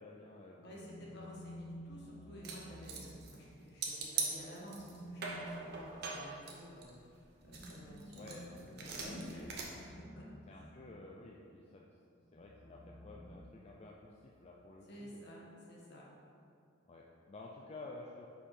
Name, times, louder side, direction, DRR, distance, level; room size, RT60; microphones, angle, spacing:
voice 1, 0.0-1.3 8.1-8.4 8.9-9.6 10.5-11.9 12.3-15.3 16.9-18.3, left 2 dB, 35° left, -2 dB, 0.4 m, -52 dB
voice 2, 0.6-10.3 10.5-10.7 14.9-15.4 15.7-16.0, equal, 60° left, -4 dB, 1.4 m, -52 dB
sound 1, 0.6-3.9 4.6-11.2 12.2-14.1, equal, 25° right, 1.2 m, -53 dB
sound 2, 2.4-3.5 3.8-5.0 5.2-7.2 7.5-9.6, right 5 dB, 55° right, 0.8 m, -41 dB
5.5 x 4.9 x 4.3 m, 2.4 s
head